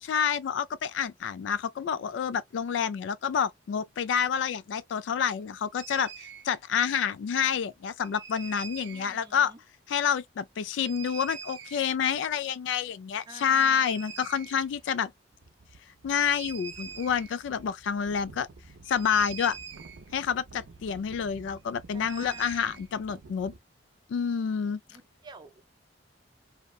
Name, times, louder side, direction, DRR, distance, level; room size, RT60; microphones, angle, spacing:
voice 1, 0.0-9.5 9.9-15.1 16.0-18.5 18.9-19.6 20.1-23.5 24.1-24.8, left 7 dB, 70° left, 0.3 m, -28 dB
sound 1, 5.8-6.4 8.0-9.2 10.7-11.9 13.5-14.8 15.1-15.2 15.3-23.6, right 7 dB, 75° right, 0.5 m, -45 dB
voice 2, 8.8-9.6 13.3-14.1 21.9-22.8 24.9-25.6, right 3 dB, 25° right, 0.5 m, -48 dB
2.8 x 2.1 x 2.3 m
head